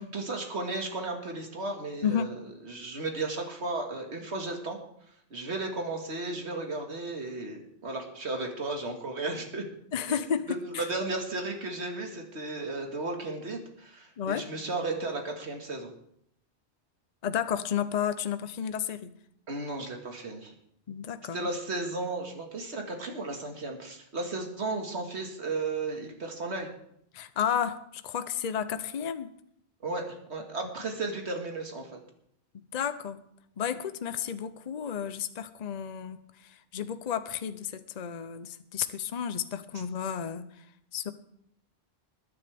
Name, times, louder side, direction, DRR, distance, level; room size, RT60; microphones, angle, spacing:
voice 1, 0.1-2.4 2.6-4.8 5.3-9.6 10.1-10.3 10.6-15.9 19.5-20.5 21.3-26.7 29.8-31.9, right 2 dB, 80° right, 2 dB, 2.2 m, -34 dB
voice 2, 2.0-2.3 9.9-10.5 10.7-10.9 14.2-14.5 17.2-19.1 20.9-21.5 27.1-29.3 32.5-33.2 33.6-40.6 40.9-41.1, left 8 dB, 45° left, 12 dB, 0.7 m, -32 dB
21.5 x 9.8 x 3.5 m, 0.71 s
omnidirectional pair, 1.1 m